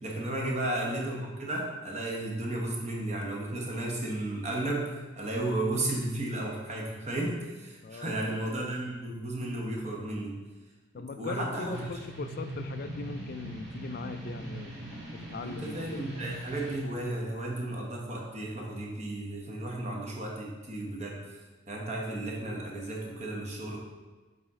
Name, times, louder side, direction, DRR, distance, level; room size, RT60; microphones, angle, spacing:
voice 1, 0.0-10.3 11.1-11.8 15.4-21.4 21.7-23.8, right 1 dB, 35° right, -2 dB, 1.0 m, -34 dB
voice 2, 7.8-8.3 10.9-14.7 15.1-16.1, left 4 dB, 45° left, 9 dB, 0.3 m, -40 dB
sound 1, 11.7-16.8, right 1 dB, 55° right, 2.1 m, -41 dB
7.3 x 4.2 x 3.6 m, 1.2 s
head